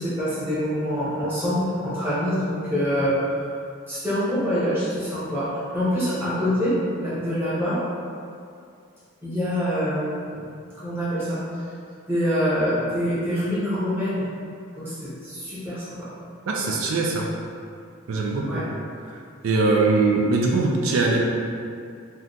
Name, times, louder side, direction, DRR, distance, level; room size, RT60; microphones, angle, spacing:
voice 1, 0.0-3.5 3.9-7.8 9.2-10.5 10.8-11.4 12.1-14.3 14.8-16.1 18.5-18.6, equal, 10° right, -12 dB, 0.9 m, -25 dB
voice 2, 16.5-17.3 18.1-18.7 19.1-21.2, right 3 dB, 75° right, -1 dB, 0.3 m, -22 dB
2.8 x 2.2 x 3.7 m, 2.4 s
head